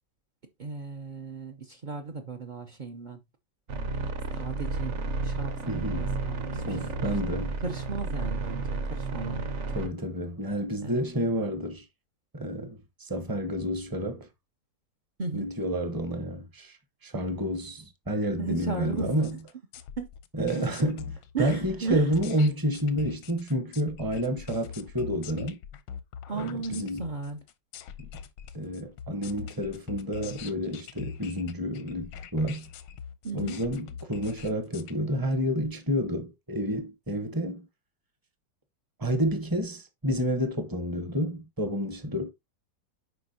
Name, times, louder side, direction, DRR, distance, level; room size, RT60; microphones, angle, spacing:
voice 1, 0.6-3.2 4.3-7.1 7.6-9.5 10.8-11.0 15.2-15.5 18.4-19.3 20.0-20.1 20.5-20.9 21.3-22.1 26.3-27.4 33.2-33.6, right 4 dB, 70° right, 0.4 m, -35 dB
sound 1, 3.7-9.9, right 3 dB, 50° right, 1.1 m, -32 dB
voice 2, 5.7-6.1 6.6-7.6 9.7-11.8 12.3-14.3 15.3-16.8 17.0-19.4 20.3-25.6 26.3-27.1 28.0-28.1 28.5-32.7 33.3-37.7 39.0-42.3, equal, 20° right, 0.6 m, -29 dB
sound 2, 19.0-34.9, left 8 dB, 90° left, 1.4 m, -43 dB
8.1 x 5.1 x 2.7 m
omnidirectional pair, 1.9 m